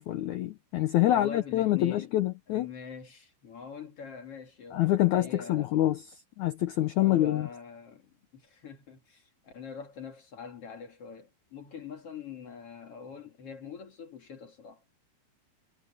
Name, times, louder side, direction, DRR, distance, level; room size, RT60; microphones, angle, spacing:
voice 1, 0.0-2.7 4.7-6.0 6.4-7.5, left 14 dB, 80° left, 1.7 m, -26 dB
voice 2, 1.0-2.1 2.5-5.7 7.0-14.8, left 6 dB, 45° left, 2.5 m, -44 dB
omnidirectional pair, 4.6 m